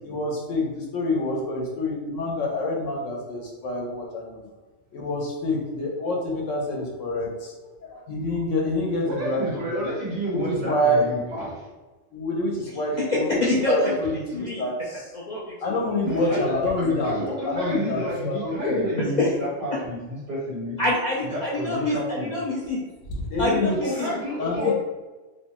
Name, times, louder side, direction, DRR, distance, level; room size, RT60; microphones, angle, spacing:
voice 1, 0.0-4.5 4.9-7.5 7.8-9.8 10.3-11.0 12.1-13.4 13.6-15.0 15.6-18.8 23.3-23.8 24.4-24.7, left 1 dB, 85° left, -2 dB, 1.1 m, -27 dB
voice 2, 9.0-11.7 16.0-20.8 21.3-22.4 23.8-24.7, equal, 45° right, -7 dB, 1.4 m, -30 dB
voice 3, 13.1-14.6 15.1-15.7 16.3-16.4 19.2-19.3 20.8-22.8 23.4-24.1 24.5-24.7, left 2 dB, 65° left, -5 dB, 0.4 m, -26 dB
2.9 x 2.2 x 2.8 m, 1.2 s
omnidirectional pair, 1.3 m